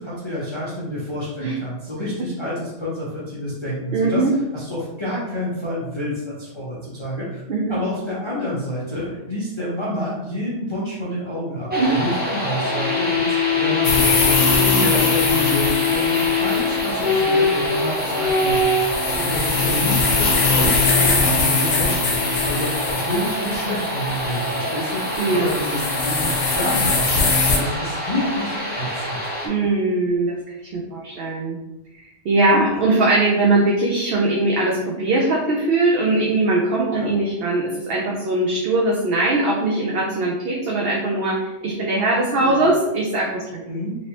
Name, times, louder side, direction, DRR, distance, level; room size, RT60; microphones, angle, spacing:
voice 1, 0.0-7.4 7.7-13.3 13.5-29.2 32.7-32.8 36.9-37.1 42.4-42.6 43.7-44.0, left 1 dB, 30° left, -8 dB, 0.6 m, -28 dB
voice 2, 3.9-4.3 7.5-7.8 11.8-11.9 14.5-14.9 19.1-19.3 25.2-25.5 29.4-30.4 30.7-31.6 31.9-43.5, right 2 dB, 60° right, -2 dB, 0.7 m, -21 dB
sound 1, 11.7-29.5, left 3 dB, 15° right, 0.4 m, -24 dB
sound 2, 13.8-27.6, left 3 dB, 90° left, 1.1 m, -23 dB
3.0 x 2.8 x 2.9 m, 1.0 s
omnidirectional pair, 1.3 m